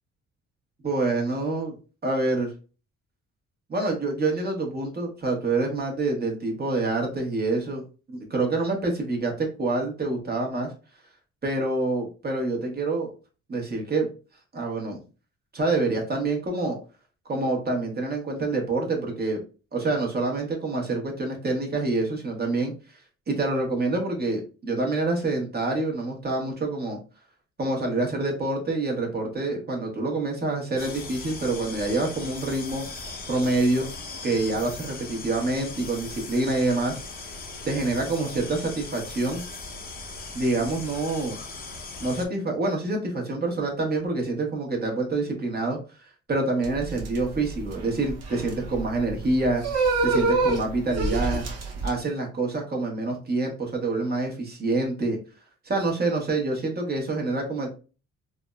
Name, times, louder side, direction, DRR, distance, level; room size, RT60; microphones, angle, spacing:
voice 1, 0.8-1.8 2.0-2.5 3.7-10.7 11.4-13.1 13.5-14.1 14.5-15.0 15.5-16.8 17.3-19.4 19.7-22.7 23.3-27.0 27.6-32.9 33.3-33.9 34.2-37.0 37.6-39.4 40.3-41.4 42.0-45.8 46.3-49.6 50.0-51.4 51.8-55.2 55.6-57.7, right 2 dB, 35° right, 1 dB, 0.9 m, -26 dB
sound 1, 30.8-42.3, left 3 dB, 30° left, 0.6 m, -39 dB
sound 2, 46.6-51.9, right 3 dB, 55° right, 0.8 m, -27 dB
3.4 x 2.0 x 2.2 m, 0.34 s
cardioid pair, 90°, 30 cm